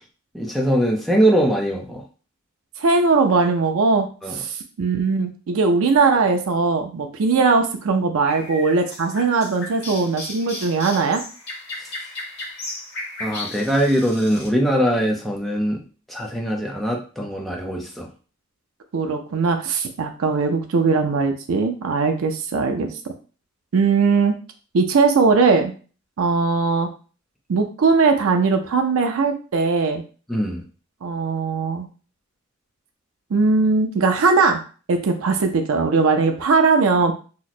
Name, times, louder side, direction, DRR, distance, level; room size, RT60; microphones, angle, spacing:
voice 1, 0.3-2.0 4.2-4.3 13.2-15.8 16.1-18.1 30.3-30.6, right 1 dB, ahead, -1 dB, 0.5 m, -21 dB
voice 2, 2.8-11.2 18.9-22.9 23.7-24.4 24.7-25.7 26.2-26.9 27.5-30.0 31.0-31.9 33.3-34.6 34.9-37.1, right 4 dB, 70° right, 4 dB, 0.4 m, -19 dB
sound 1, 8.3-14.5, left 2 dB, 50° left, 1.0 m, -35 dB
2.9 x 2.1 x 4.1 m, 0.37 s
head